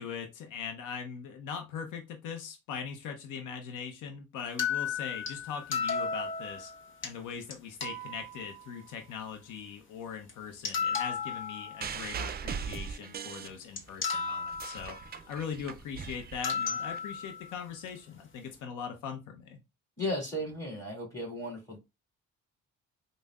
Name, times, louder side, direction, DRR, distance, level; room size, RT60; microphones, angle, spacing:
voice 1, 0.0-6.7 7.0-15.0 15.3-19.6, left 6 dB, 80° left, 5 dB, 0.7 m, -41 dB
sound 1, 4.6-7.1 7.5-7.6 7.8-8.9 10.3-10.4 10.6-12.2 13.3-13.4 13.8-15.1 16.4-17.5, left 6 dB, 40° left, 0.8 m, -34 dB
sound 2, 11.8-14.0 14.4-17.0 17.9-18.0, right 6 dB, 35° right, 0.4 m, -39 dB
voice 2, 20.0-21.8, left 1 dB, 10° left, -3 dB, 2.1 m, -35 dB
5.2 x 2.1 x 2.3 m, 0.24 s
cardioid pair, 90°, 30 cm